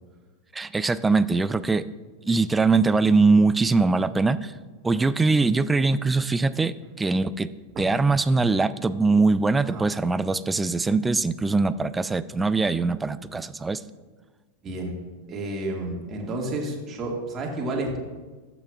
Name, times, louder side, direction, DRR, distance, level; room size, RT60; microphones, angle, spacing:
voice 1, 0.5-1.9 2.3-4.5 4.8-7.5 7.8-13.8, right 3 dB, 15° right, 15 dB, 0.3 m, -22 dB
voice 2, 14.6-15.0 15.3-18.0, right 2 dB, 30° right, 0 dB, 1.9 m, -31 dB
13.5 x 6.0 x 2.4 m, 1.3 s
hypercardioid pair, 90°, 0 cm